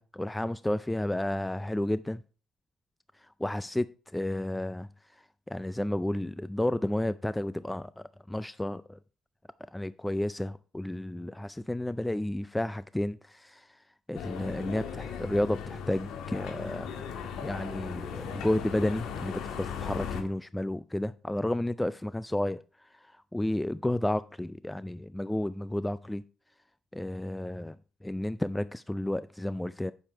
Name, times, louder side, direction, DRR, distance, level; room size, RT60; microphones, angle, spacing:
voice 1, 0.0-2.2 3.2-4.9 5.5-9.0 9.7-13.8 14.1-16.9 17.4-26.2 26.9-27.8 28.0-29.9, left 1 dB, 10° left, 0.3 m, -32 dB
sound 1, 14.1-20.2, left 7 dB, 85° left, 1.8 m, -37 dB
8.9 x 6.7 x 4.5 m
cardioid pair, 90°, 0 cm